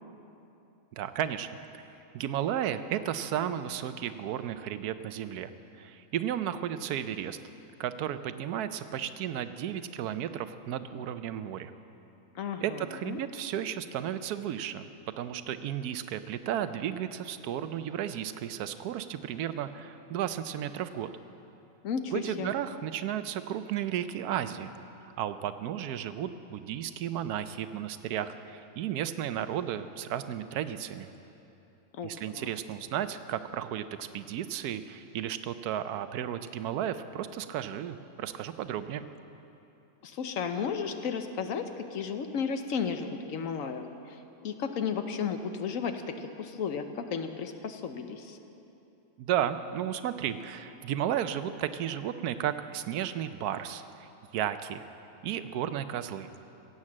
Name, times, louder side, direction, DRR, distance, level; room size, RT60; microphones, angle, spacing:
voice 1, 0.9-1.5 2.1-5.5 5.8-7.4 7.8-11.7 12.6-14.9 15.2-21.1 22.1-24.7 25.2-31.1 32.0-39.1 49.2-54.8 55.2-56.3, right 10 dB, 80° right, 12 dB, 1.1 m, -33 dB
voice 2, 12.3-13.2 21.8-22.5 31.9-32.5 40.0-48.4, left 6 dB, 65° left, 7 dB, 1.1 m, -34 dB
16.0 x 8.7 x 7.4 m, 2.8 s
omnidirectional pair, 1.6 m